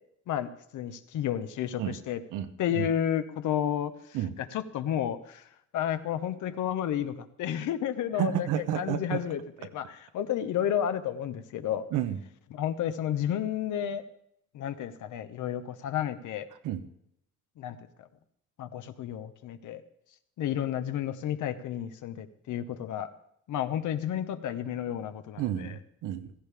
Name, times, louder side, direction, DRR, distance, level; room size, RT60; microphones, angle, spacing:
voice 1, 0.3-2.2 2.6-3.9 4.5-5.4 5.7-8.3 8.8-11.9 12.5-14.0 14.5-16.5 17.6-17.8 18.6-19.8 20.4-23.1 23.5-25.7, left 10 dB, 80° left, 10 dB, 1.1 m, -31 dB
voice 2, 2.3-2.9 4.1-4.3 8.2-9.2 11.9-12.2 16.6-16.8 25.4-26.3, right 10 dB, 90° right, 10 dB, 1.0 m, -31 dB
16.0 x 14.5 x 3.5 m, 0.72 s
cardioid pair, 90°, 30 cm